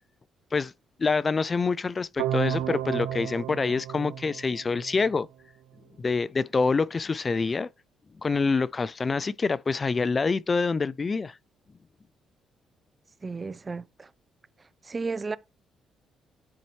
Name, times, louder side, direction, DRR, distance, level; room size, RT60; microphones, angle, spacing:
voice 1, 1.0-5.3 6.0-7.7 8.2-11.4, left 4 dB, 35° left, 0.4 m, -26 dB
sound 1, 2.2-5.2, right 11 dB, 90° right, 0.5 m, -32 dB
voice 2, 13.2-14.1 14.8-15.4, right 4 dB, 35° right, 0.5 m, -33 dB
9.7 x 4.1 x 3.1 m
supercardioid pair, 60°, 0 cm